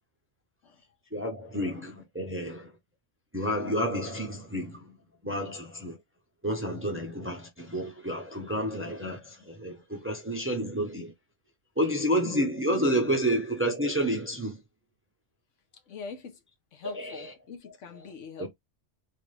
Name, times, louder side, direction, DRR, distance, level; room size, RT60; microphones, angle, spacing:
voice 1, 1.1-2.7 3.3-5.0 5.2-6.0 6.4-11.1 11.8-14.6 16.9-17.3 18.4-18.5, equal, 15° right, 0.6 m, -30 dB
voice 2, 15.7-16.4 16.7-18.5, left 5 dB, 85° left, 1.2 m, -43 dB
4.0 x 2.5 x 3.2 m
omnidirectional pair, 1.2 m